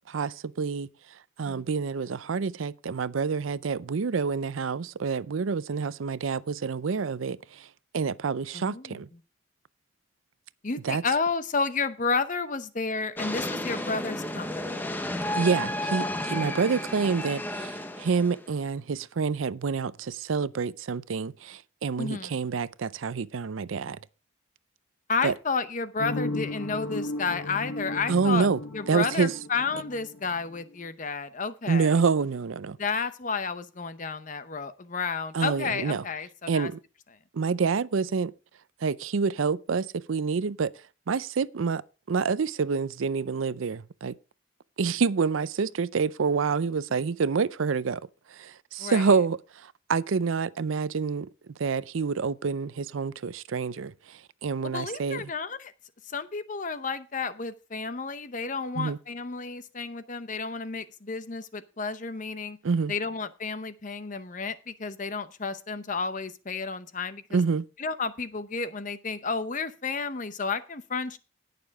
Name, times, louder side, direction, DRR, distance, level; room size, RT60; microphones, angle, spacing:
voice 1, 0.1-0.9 1.4-7.7 7.9-9.1 10.8-11.0 15.4-24.0 25.2-25.3 28.1-28.6 28.9-29.3 31.7-32.8 35.3-36.0 36.5-36.8 37.3-38.3 38.8-40.7 41.1-41.8 42.1-44.2 44.8-48.0 48.3-51.3 51.6-55.3 58.8-59.0 62.6-62.9 67.3-67.7, right 5 dB, 85° right, 0.5 m, -27 dB
voice 2, 8.5-9.0 10.6-14.9 22.0-22.3 25.1-28.5 28.7-31.9 32.8-36.7 48.8-49.0 54.6-55.7 56.1-62.6 62.9-67.4 67.8-71.2, left 4 dB, 40° left, 0.8 m, -31 dB
sound 1, 13.2-18.6, left 1 dB, 10° left, 0.8 m, -32 dB
sound 2, 26.0-30.7, left 2 dB, 90° left, 1.1 m, -35 dB
18.5 x 6.8 x 3.6 m
head